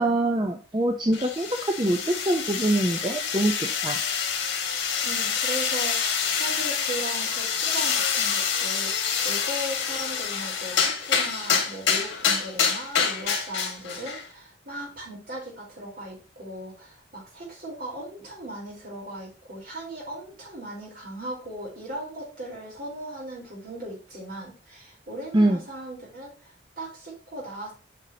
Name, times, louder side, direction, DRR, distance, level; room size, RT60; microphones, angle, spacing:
voice 1, 0.0-4.0 25.3-25.6, right 1 dB, 25° right, 3 dB, 0.6 m, -24 dB
sound 1, 1.1-14.3, left 6 dB, 85° left, 1.7 m, -27 dB
voice 2, 5.0-8.9 9.2-27.7, right 1 dB, 50° right, -3 dB, 4.0 m, -38 dB
8.4 x 5.4 x 2.8 m, 0.34 s
head